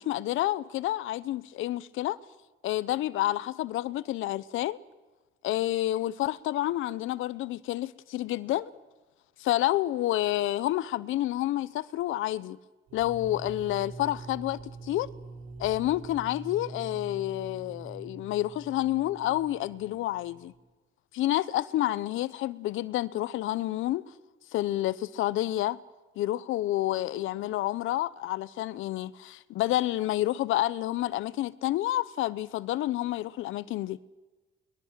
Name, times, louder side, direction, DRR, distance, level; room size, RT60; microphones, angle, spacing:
voice 1, 0.0-2.2 2.6-4.8 5.4-8.7 9.4-12.6 12.9-15.1 15.6-20.5 21.1-24.0 24.5-25.8 26.2-34.0, left 14 dB, 85° left, 0.9 m, -29 dB
sound 1, 12.9-20.6, right 3 dB, 80° right, 3.1 m, -45 dB
23.5 x 21.5 x 7.5 m
cardioid pair, 90°, 20 cm